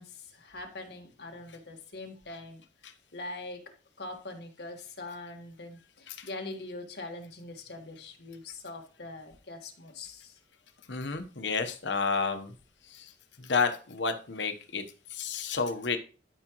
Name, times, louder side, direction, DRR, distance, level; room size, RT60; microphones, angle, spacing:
voice 1, 0.0-2.6 3.1-3.7 4.0-10.3, left 2 dB, 65° left, 3 dB, 1.6 m, -43 dB
voice 2, 10.9-12.5 12.9-13.1 13.4-14.8 15.1-16.0, left 4 dB, 85° left, 8 dB, 1.1 m, -31 dB
13.0 x 4.9 x 3.1 m, 0.36 s
head